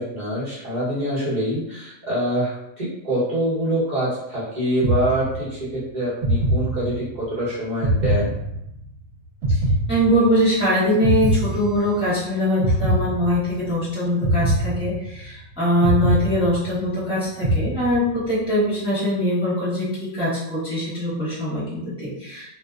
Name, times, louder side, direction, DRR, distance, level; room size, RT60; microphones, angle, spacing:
voice 1, 0.0-8.3, right 1 dB, 35° right, -9 dB, 1.0 m, -25 dB
sound 1, 4.8-5.7 6.2-7.3 7.8-9.0 9.4-10.6 11.0-12.2 12.6-13.7 14.2-15.4 15.8-17.0 17.4-18.3, right 1 dB, 80° right, 1.1 m, -23 dB
voice 2, 9.9-22.5, equal, 5° right, -10 dB, 0.5 m, -22 dB
2.6 x 2.1 x 2.3 m, 0.85 s
omnidirectional pair, 1.5 m